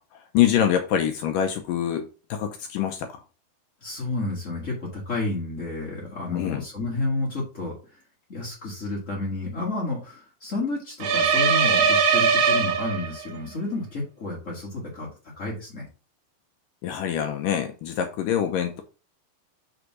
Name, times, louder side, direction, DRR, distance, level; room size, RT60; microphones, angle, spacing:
voice 1, 0.3-3.2 6.3-6.6 16.8-18.8, left 10 dB, 75° left, 2.1 m, -25 dB
voice 2, 3.8-7.7 8.3-15.1 15.4-15.9, left 2 dB, 45° left, 0.9 m, -31 dB
sound 1, 11.0-13.4, right 5 dB, 75° right, 2.7 m, -21 dB
6.5 x 3.6 x 6.0 m
omnidirectional pair, 4.4 m